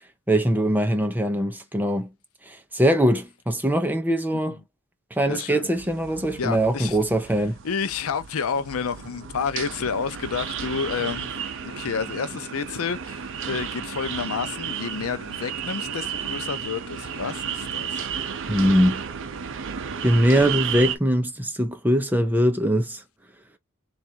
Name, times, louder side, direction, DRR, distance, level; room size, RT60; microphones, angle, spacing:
voice 1, 0.3-2.1 2.5-4.6 5.2-7.6 18.5-19.0 20.0-23.0, equal, 10° right, 0.6 m, -22 dB
voice 2, 5.3-5.7 6.4-7.0 7.6-11.3 11.6-18.1, left 6 dB, 70° left, 0.6 m, -30 dB
sound 1, 5.8-21.0, right 7 dB, 60° right, 0.6 m, -33 dB
3.4 x 2.5 x 4.4 m
head